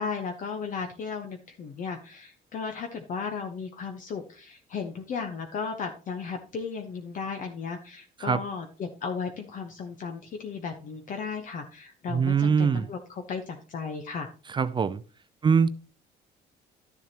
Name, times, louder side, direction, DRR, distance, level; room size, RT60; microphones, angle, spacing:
voice 1, 0.0-14.3, left 5 dB, 50° left, 1.0 m, -35 dB
voice 2, 12.1-12.9 14.5-15.0 15.4-15.7, right 6 dB, 30° right, 0.4 m, -23 dB
12.0 x 7.1 x 2.9 m
cardioid pair, 110°, 17 cm